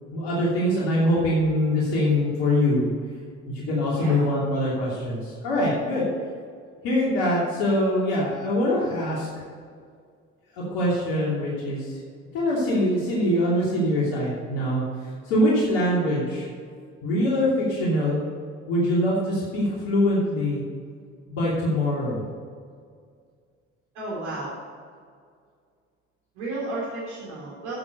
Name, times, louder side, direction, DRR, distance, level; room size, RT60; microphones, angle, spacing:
voice 1, 0.1-2.9 3.5-6.1 6.8-9.3 10.6-12.0 12.3-16.5 17.0-18.2 18.7-20.6 21.3-22.2, left 1 dB, 75° left, -6 dB, 2.9 m, -23 dB
voice 2, 23.9-24.5 26.3-27.8, right 2 dB, 85° right, -6 dB, 3.7 m, -33 dB
12.0 x 7.1 x 6.6 m, 2.1 s
hypercardioid pair, 55°, 34 cm